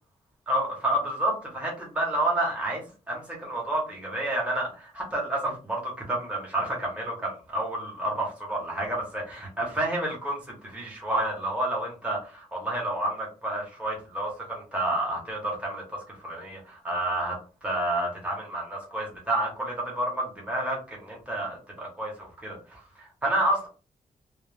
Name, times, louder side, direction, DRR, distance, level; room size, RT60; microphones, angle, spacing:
voice 1, 0.5-17.4 17.6-23.7, right 1 dB, 10° right, -3 dB, 0.7 m, -30 dB
2.2 x 2.0 x 3.1 m, 0.34 s
wide cardioid pair, 180°, 15 cm